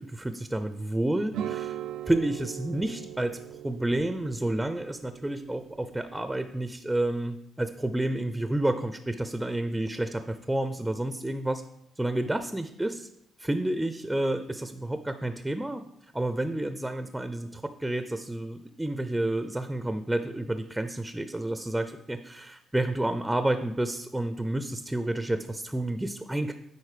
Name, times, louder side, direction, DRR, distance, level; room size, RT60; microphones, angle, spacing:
voice 1, 0.0-1.8 2.1-3.4 3.6-11.6 12.0-13.1 13.4-15.8 16.1-26.5, right 1 dB, 10° right, 9 dB, 0.5 m, -30 dB
sound 1, 1.3-6.5, right 10 dB, 85° right, 0.5 m, -39 dB
9.8 x 4.3 x 4.9 m, 0.79 s
cardioid pair, 90°, 0 cm